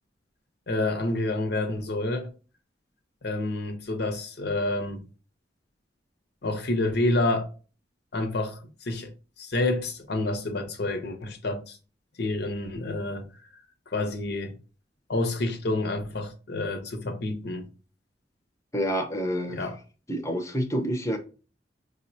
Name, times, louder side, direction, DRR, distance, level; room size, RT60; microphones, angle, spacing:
voice 1, 0.7-2.3 3.2-5.0 6.4-7.5 8.1-9.1 9.4-11.8 12.2-13.3 13.9-14.6 15.1-17.7 19.5-19.8, left 2 dB, 65° left, 0.7 m, -28 dB
voice 2, 18.7-19.6 20.1-21.2, equal, 15° left, 0.6 m, -28 dB
5.1 x 2.1 x 2.7 m
head